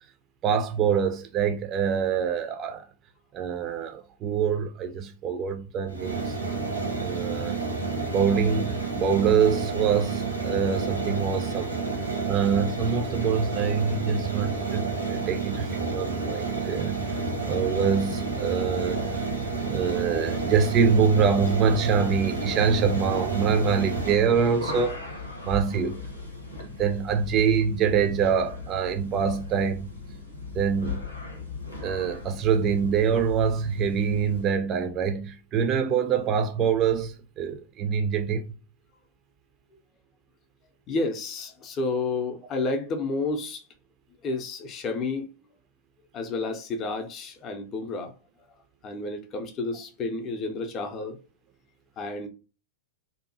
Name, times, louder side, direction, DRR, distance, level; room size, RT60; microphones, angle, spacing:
voice 1, 0.4-2.8 3.3-6.4 7.0-7.7 8.1-11.7 12.3-17.2 17.5-19.3 19.7-25.0 25.4-26.0 26.6-29.9 30.5-31.0 31.8-38.4, right 6 dB, 30° right, 0.4 m, -25 dB
sound 1, 5.9-24.1, right 4 dB, 90° right, 0.8 m, -30 dB
sound 2, 16.9-34.6, left 3 dB, 90° left, 0.8 m, -39 dB
voice 2, 40.9-43.6 44.2-45.3 46.1-48.1 48.8-51.2 52.0-52.3, left 3 dB, 30° left, 0.5 m, -30 dB
2.7 x 2.2 x 2.6 m
figure-of-eight pair, 95°, 0 cm